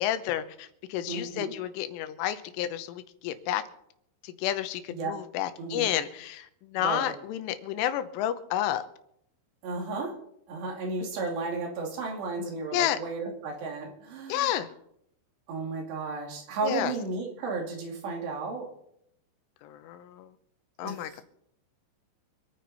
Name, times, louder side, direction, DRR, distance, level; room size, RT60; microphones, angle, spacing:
voice 1, 0.0-3.6 4.2-8.8 12.7-13.0 14.3-14.7 16.6-16.9 19.6-20.3 20.8-21.2, left 12 dB, 90° left, 10 dB, 3.4 m, -30 dB
voice 2, 1.1-1.5 4.9-5.1 5.6-5.9 6.8-7.1 9.6-10.1 10.5-14.5 15.5-18.7 20.8-20.9, right 3 dB, 65° right, 1 dB, 4.3 m, -33 dB
26.5 x 9.5 x 4.1 m, 0.74 s
omnidirectional pair, 5.6 m